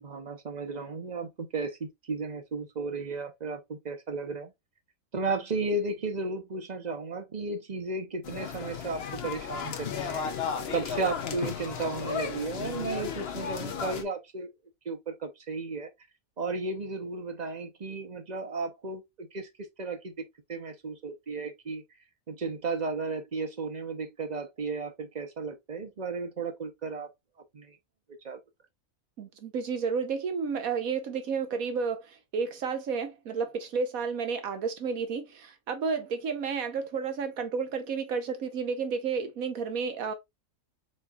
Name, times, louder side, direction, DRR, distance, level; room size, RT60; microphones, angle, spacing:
voice 1, 0.0-4.5 5.1-14.5 14.8-15.9 16.4-19.5 19.8-20.1 20.5-21.8 22.3-27.1 27.5-27.8 28.2-28.4, right 3 dB, 35° right, 0.8 m, -34 dB
sound 1, 8.2-14.0, left 7 dB, 55° left, 0.9 m, -34 dB
voice 2, 29.2-40.1, right 5 dB, 80° right, 1.5 m, -31 dB
4.3 x 4.1 x 2.3 m
omnidirectional pair, 1.4 m